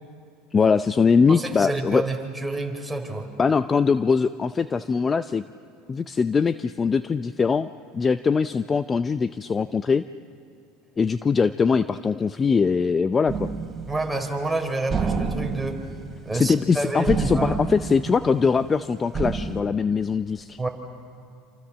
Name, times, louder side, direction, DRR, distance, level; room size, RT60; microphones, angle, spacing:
voice 1, 0.5-2.0 3.4-5.4 5.9-10.0 11.0-13.5 16.3-20.6, left 5 dB, 25° left, 13 dB, 0.6 m, -22 dB
voice 2, 1.3-3.3 13.9-15.8 16.2-17.6 20.6-20.7, right 2 dB, 5° right, 2 dB, 4.4 m, -28 dB
sound 1, 13.3-14.5 14.9-16.8 17.1-18.7 19.1-19.6, right 5 dB, 25° right, 3.9 m, -29 dB
27.5 x 27.5 x 7.5 m, 2.6 s
hypercardioid pair, 90°, 0 cm